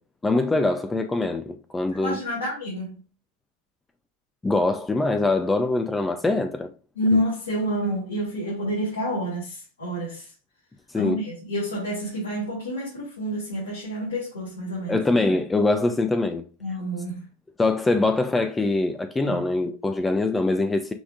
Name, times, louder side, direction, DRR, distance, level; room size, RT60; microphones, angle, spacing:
voice 1, 0.2-2.2 4.4-6.7 10.9-11.2 14.9-16.4 17.6-20.9, left 2 dB, 10° left, 0.5 m, -23 dB
voice 2, 2.0-3.0 7.0-10.3 10.9-15.0 16.6-17.2 19.2-19.4, equal, 85° left, 2.4 m, -28 dB
6.0 x 3.6 x 2.4 m
hypercardioid pair, 95°, 0 cm